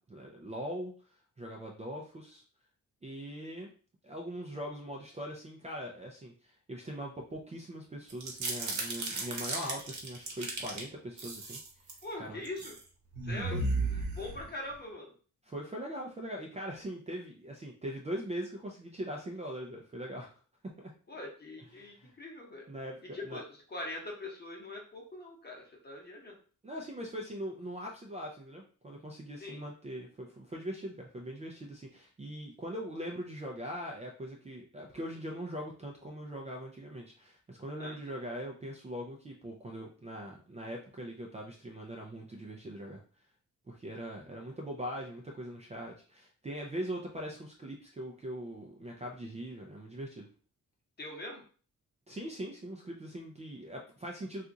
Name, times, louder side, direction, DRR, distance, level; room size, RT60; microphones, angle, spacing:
voice 1, 0.0-2.4 3.0-3.7 4.0-12.4 13.5-13.6 15.5-20.4 20.8-20.9 21.8-22.1 22.7-23.4 26.6-43.0 43.7-50.3 52.1-54.5, equal, 20° right, -1 dB, 0.4 m, -41 dB
sound 1, 8.1-10.8 11.2-12.0 12.4-12.8 13.1-14.7, right 2 dB, 60° right, 0.9 m, -35 dB
voice 2, 12.0-12.8 13.2-15.1 21.1-22.7 23.1-26.4 29.4-29.6 37.8-38.0 51.0-51.4, left 2 dB, 30° left, -1 dB, 0.9 m, -43 dB
2.8 x 2.4 x 3.6 m, 0.40 s
wide cardioid pair, 150°, 32 cm